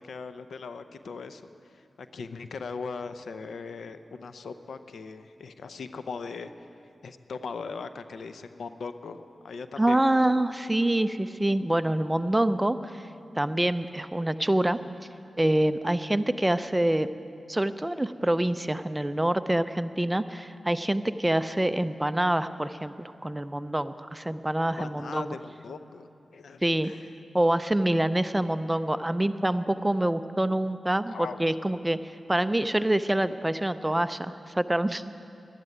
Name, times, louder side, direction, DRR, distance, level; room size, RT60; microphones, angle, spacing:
voice 1, 0.0-6.5 7.0-10.0 24.8-27.1 31.1-31.5, left 5 dB, 85° left, 11 dB, 0.6 m, -39 dB
voice 2, 9.8-13.1 13.4-14.8 15.4-17.1 17.5-25.3 26.6-26.9 27.3-32.0 32.3-35.1, right 1 dB, 15° right, 12 dB, 0.5 m, -26 dB
12.0 x 11.0 x 9.2 m, 2.7 s
cardioid pair, 65°, 0 cm